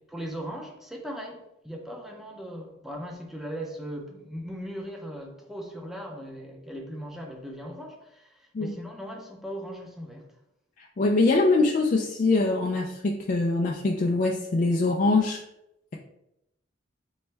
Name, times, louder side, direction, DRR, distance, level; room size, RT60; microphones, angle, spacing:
voice 1, 0.1-10.4, equal, ahead, 0.6 m, -38 dB
voice 2, 10.8-15.4, left 3 dB, 45° left, 0.4 m, -23 dB
4.3 x 3.1 x 3.3 m
head